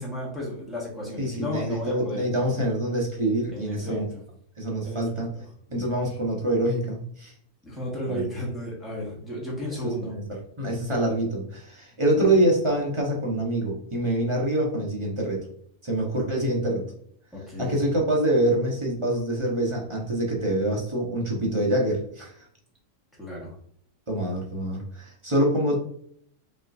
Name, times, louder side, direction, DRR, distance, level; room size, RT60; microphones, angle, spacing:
voice 1, 0.0-2.2 3.5-4.2 4.9-5.0 7.6-10.1 12.2-12.3 17.3-17.8 23.2-23.5, left 1 dB, ahead, -5 dB, 1.5 m, -33 dB
voice 2, 1.2-4.0 4.6-5.3 5.7-7.3 8.1-8.2 9.8-15.5 15.8-16.8 17.6-22.5 24.1-25.8, right 1 dB, 25° right, -2 dB, 0.9 m, -25 dB
5.4 x 3.1 x 2.6 m, 0.64 s
omnidirectional pair, 1.4 m